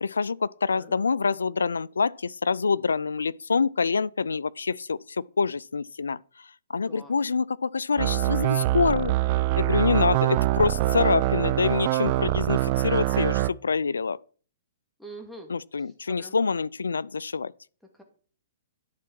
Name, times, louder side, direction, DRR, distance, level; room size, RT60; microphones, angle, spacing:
voice 1, 0.0-9.3 9.6-14.2 15.5-17.5, left 5 dB, 90° left, 0.3 m, -26 dB
sound 1, 8.0-13.5, right 17 dB, 40° right, 0.5 m, -24 dB
voice 2, 15.0-16.4 17.9-18.0, right 2 dB, ahead, 2.0 m, -45 dB
10.5 x 4.7 x 6.0 m
hypercardioid pair, 135°, 0 cm